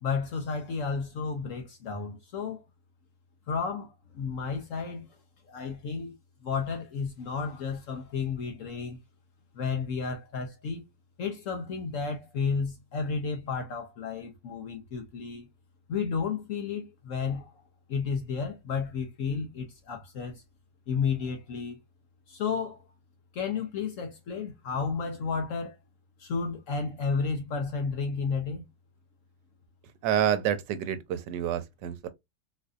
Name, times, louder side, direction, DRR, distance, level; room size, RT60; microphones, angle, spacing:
voice 1, 0.0-2.6 3.5-5.1 5.5-6.1 6.4-9.0 9.5-10.8 11.2-15.5 15.9-17.5 17.9-20.4 20.9-21.8 22.3-22.8 23.3-25.8 26.2-28.6, left 5 dB, 65° left, 0.8 m, -32 dB
voice 2, 30.0-32.1, right 10 dB, 85° right, 1.3 m, -28 dB
4.0 x 2.5 x 2.3 m
omnidirectional pair, 1.8 m